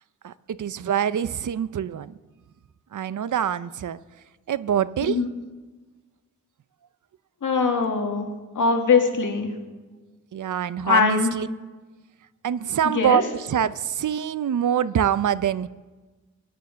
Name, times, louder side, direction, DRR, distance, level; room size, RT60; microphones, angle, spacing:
voice 1, 0.2-2.1 2.9-4.0 4.5-5.2 10.3-11.5 12.4-15.7, right 9 dB, 80° right, 0.6 m, -25 dB
voice 2, 7.4-8.3 8.6-9.5 10.9-11.3 12.8-13.2, left 5 dB, 85° left, 2.1 m, -21 dB
23.0 x 9.4 x 6.3 m
wide cardioid pair, 105°, 30 cm